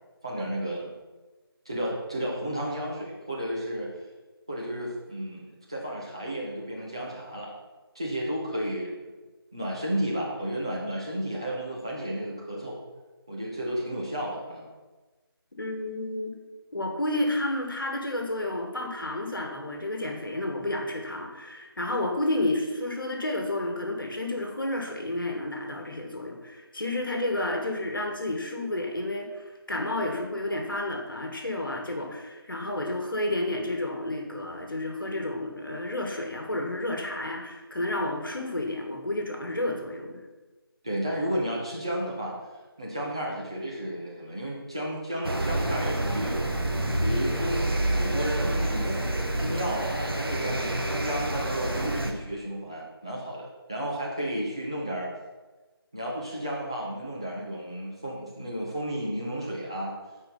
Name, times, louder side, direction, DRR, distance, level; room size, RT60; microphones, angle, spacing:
voice 1, 0.2-0.9 1.7-3.9 4.5-7.5 7.9-9.0 9.5-12.8 13.3-14.7 40.8-42.3 42.8-46.4 46.9-55.1 55.9-60.0, equal, 10° right, -5 dB, 0.5 m, -32 dB
voice 2, 15.6-16.3 16.7-40.2, left 1 dB, 60° left, 2 dB, 1.7 m, -31 dB
sound 1, 45.2-52.1, right 1 dB, 65° right, 1.2 m, -28 dB
8.6 x 4.5 x 5.3 m, 1.2 s
figure-of-eight pair, 165°, 13 cm